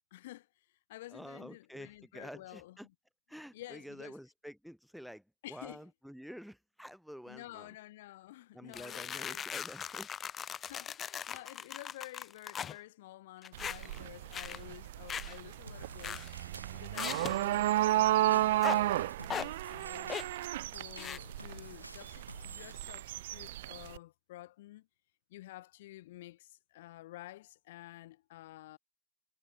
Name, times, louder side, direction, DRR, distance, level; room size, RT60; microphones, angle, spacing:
voice 1, 0.1-2.9 3.5-4.2 5.4-5.8 7.3-9.5 10.6-20.3 20.7-24.9 25.3-28.8, left 16 dB, 55° left, 1.2 m, -51 dB
voice 2, 1.1-2.9 3.3-5.2 5.5-7.7 8.5-10.1, equal, ahead, 1.5 m, -49 dB
sound 1, 8.7-12.8 13.4-14.0 14.3-14.6 15.1-15.4 16.0-16.4 16.9-17.4 18.6-18.8 19.2-19.5 20.1-20.4 21.0-21.2, left 8 dB, 25° left, 0.6 m, -39 dB
sound 2, 13.5-24.0, right 15 dB, 55° right, 0.3 m, -33 dB
sound 3, 15.7-22.7, right 1 dB, 85° right, 2.4 m, -52 dB
figure-of-eight pair, 90°, 0 cm